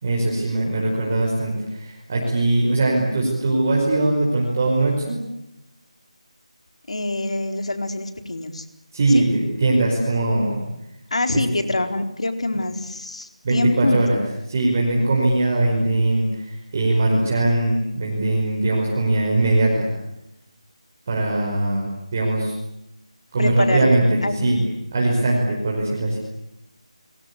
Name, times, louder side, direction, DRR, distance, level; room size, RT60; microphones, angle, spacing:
voice 1, 0.0-5.2 8.9-10.6 13.4-14.2 14.5-19.9 21.1-22.5 23.3-24.6 24.9-26.2, right 2 dB, 20° right, -2 dB, 5.1 m, -21 dB
voice 2, 6.9-8.6 9.1-9.2 11.1-14.0 23.4-24.7, left 2 dB, 60° left, 7 dB, 4.4 m, -25 dB
29.5 x 23.5 x 8.5 m, 0.86 s
figure-of-eight pair, 180°, 4 cm